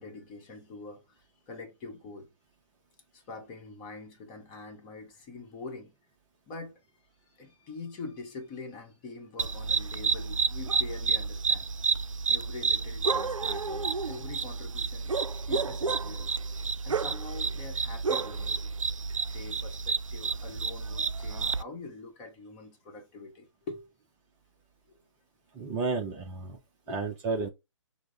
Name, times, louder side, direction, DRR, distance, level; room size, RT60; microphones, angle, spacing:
voice 1, 0.0-2.3 3.1-5.9 6.5-6.8 7.2-12.0 12.3-15.1 15.5-16.3 16.8-18.6 19.3-23.9 25.7-26.1 26.9-27.0, left 3 dB, 25° left, 1.1 m, -44 dB
sound 1, 9.4-21.6, right 4 dB, 80° right, 0.5 m, -30 dB
voice 2, 25.5-26.6 26.9-27.5, right 3 dB, 20° right, 0.6 m, -32 dB
6.1 x 2.1 x 3.5 m
figure-of-eight pair, 135°, 17 cm